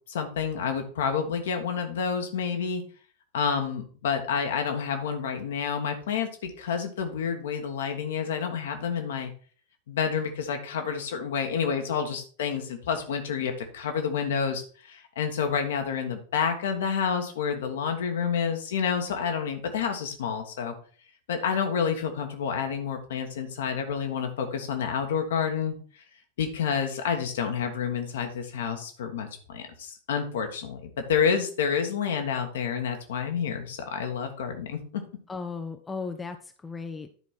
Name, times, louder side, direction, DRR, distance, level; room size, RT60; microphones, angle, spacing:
voice 1, 0.1-2.8 3.3-9.3 9.9-20.7 21.3-25.7 26.4-35.0, left 6 dB, 60° left, 5 dB, 1.5 m, -29 dB
voice 2, 35.3-37.1, left 4 dB, 15° left, 6 dB, 0.7 m, -36 dB
10.5 x 4.6 x 4.3 m, 0.42 s
figure-of-eight pair, 90°, 0 cm